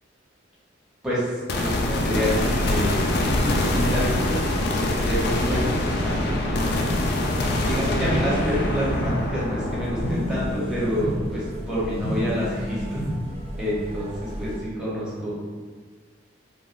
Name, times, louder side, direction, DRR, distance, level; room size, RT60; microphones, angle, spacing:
voice 1, 1.0-4.4 5.0-6.9 7.6-13.0 13.6-15.3, equal, 5° right, -9 dB, 0.8 m, -28 dB
sound 1, 1.5-12.8, left 1 dB, 55° left, 0.3 m, -25 dB
sound 2, 3.5-14.6, equal, 30° right, 0.3 m, -38 dB
sound 3, 8.0-9.1 10.0-11.1 12.0-13.1, equal, 90° left, 0.7 m, -30 dB
3.1 x 2.3 x 2.5 m, 1.5 s
head